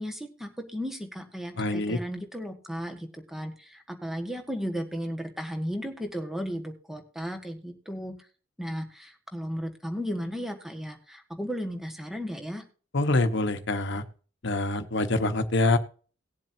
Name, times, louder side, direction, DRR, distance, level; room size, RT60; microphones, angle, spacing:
voice 1, 0.0-8.1 8.6-12.6, equal, ahead, 5 dB, 1.5 m, -35 dB
voice 2, 1.6-2.0 12.9-14.0 14.4-15.8, left 2 dB, 60° left, 8 dB, 1.1 m, -25 dB
19.0 x 7.6 x 2.7 m, 0.39 s
head